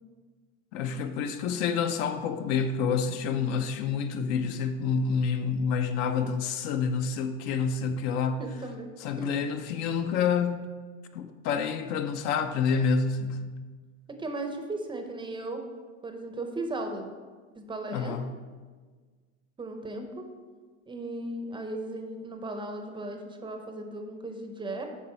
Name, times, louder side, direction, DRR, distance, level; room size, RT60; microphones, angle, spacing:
voice 1, 0.7-8.4 9.0-10.6 11.1-13.5 17.9-18.3, left 6 dB, 50° left, 8 dB, 0.6 m, -28 dB
voice 2, 8.4-8.9 9.2-9.3 14.2-15.6 16.0-17.1 17.6-18.2 19.6-20.3 20.9-24.8, right 2 dB, 15° right, 4 dB, 0.6 m, -36 dB
8.4 x 5.4 x 4.4 m, 1.5 s
supercardioid pair, 130°, 37 cm